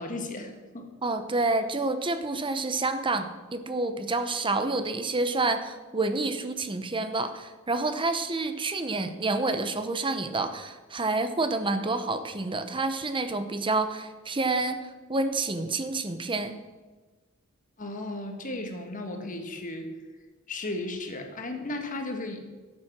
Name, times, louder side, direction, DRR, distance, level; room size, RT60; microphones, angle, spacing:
voice 1, 0.0-0.9 1.4-1.5 17.8-19.9 20.5-22.4, left 2 dB, 40° left, 4 dB, 1.5 m, -35 dB
voice 2, 1.0-16.5, right 3 dB, 25° right, 9 dB, 0.8 m, -28 dB
12.5 x 7.7 x 6.0 m, 1.3 s
head